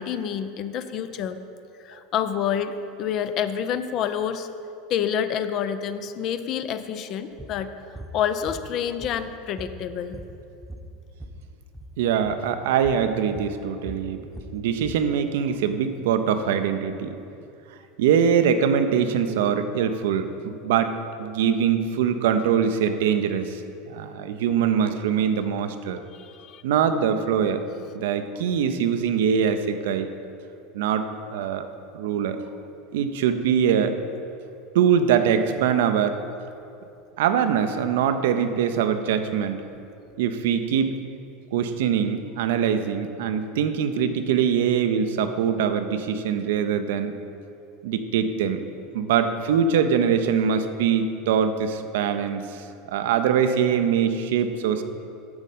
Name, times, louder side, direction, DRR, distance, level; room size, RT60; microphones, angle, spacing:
voice 1, 0.0-1.4 1.8-4.5 4.9-7.7 8.1-10.2 26.1-26.6, left 8 dB, 45° left, 11 dB, 0.5 m, -28 dB
sound 1, 7.4-7.6 7.9-8.2 8.5-9.3 9.6-11.4 11.7-11.9 12.2-12.4 12.8-13.1 13.4-15.1, right 1 dB, 5° right, 0.9 m, -40 dB
voice 2, 12.0-14.2 14.5-17.1 18.0-20.9 21.2-26.0 26.6-27.7 27.9-30.1 30.7-31.0 31.3-31.7 31.9-32.4 32.9-34.0 34.7-36.2 37.2-39.6 40.2-40.9 41.5-47.1 47.8-48.6 48.9-54.8, right 7 dB, 65° right, 9 dB, 0.5 m, -23 dB
8.0 x 7.3 x 5.3 m, 2.6 s
figure-of-eight pair, 75°, 0 cm